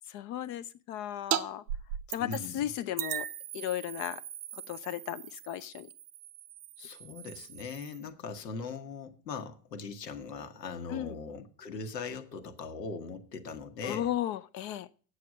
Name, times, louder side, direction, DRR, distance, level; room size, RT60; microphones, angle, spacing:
voice 1, 0.1-1.6 2.1-3.2 3.5-4.2 4.5-5.9 10.9-11.2 13.8-14.9, left 12 dB, 40° left, 0.5 m, -35 dB
sound 1, 1.3-1.4 1.7-2.6 3.0-8.1, right 11 dB, 75° right, 0.8 m, -38 dB
voice 2, 2.2-2.7 6.8-14.1, left 4 dB, 80° left, 1.3 m, -40 dB
8.4 x 6.6 x 6.2 m
hypercardioid pair, 80°, 48 cm